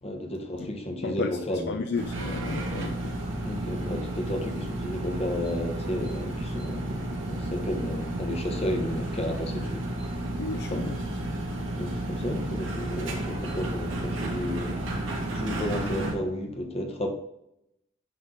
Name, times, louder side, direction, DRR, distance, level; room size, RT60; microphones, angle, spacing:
voice 1, 0.0-1.8 3.4-9.9 10.7-10.8 11.8-15.0 15.3-17.1, left 1 dB, 30° left, 3 dB, 1.3 m, -33 dB
voice 2, 1.0-1.4 1.7-3.2 10.4-11.0, left 4 dB, 60° left, 5 dB, 0.5 m, -32 dB
sound 1, 1.9-16.1, right 1 dB, 85° right, 1.9 m, -32 dB
9.7 x 3.7 x 4.0 m, 0.80 s
head